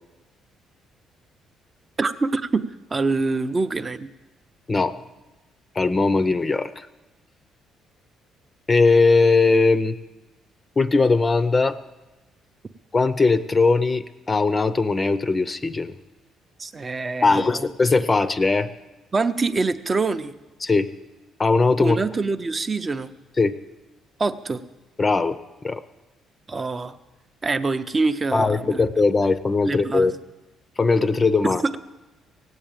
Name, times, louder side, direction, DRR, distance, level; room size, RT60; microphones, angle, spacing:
voice 1, 2.0-2.6 2.9-4.1 16.6-17.7 19.1-20.3 21.8-23.1 24.2-24.6 26.5-27.0 27.4-28.8 29.7-30.2 31.4-31.8, right 3 dB, 25° right, 11 dB, 0.7 m, -25 dB
voice 2, 5.8-6.9 8.7-10.0 10.8-11.8 12.9-15.9 17.2-18.7 20.6-20.9 21.4-22.0 23.4-23.6 25.0-25.4 25.6-25.8 28.3-30.1 30.8-31.6, left 3 dB, 25° left, 11 dB, 0.6 m, -19 dB
17.5 x 8.1 x 8.9 m, 1.1 s
cardioid pair, 125°, 0 cm